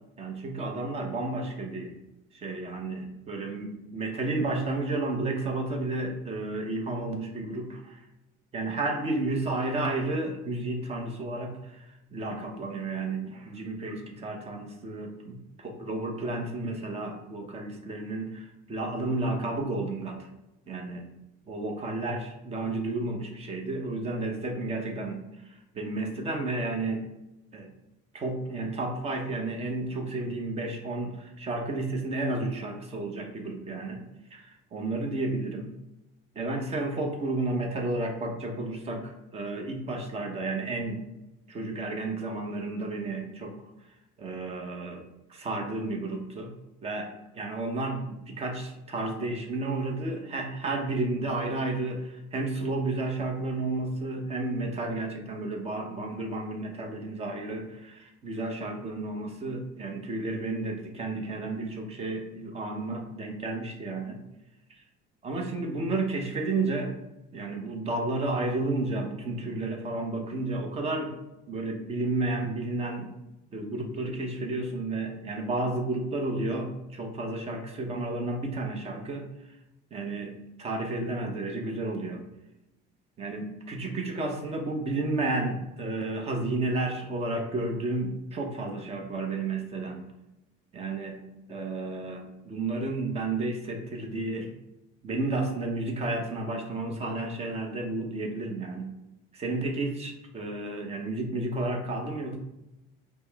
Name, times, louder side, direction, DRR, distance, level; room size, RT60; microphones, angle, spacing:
voice 1, 0.2-2.0 2.3-8.0 8.5-20.3 20.7-21.1 21.5-27.1 27.5-27.7 28.1-34.0 34.3-35.7 36.3-41.0 41.5-43.5 44.2-45.0 45.3-46.5 46.8-47.1 47.3-64.2 65.2-66.9 67.3-71.1 71.5-73.1 73.5-79.3 79.9-82.2 83.2-90.0 90.7-91.2 91.5-94.5 95.0-98.9 99.3-102.4, right 2 dB, 30° right, 3 dB, 0.8 m, -32 dB
5.2 x 2.1 x 3.4 m, 0.94 s
cardioid pair, 125°, 21 cm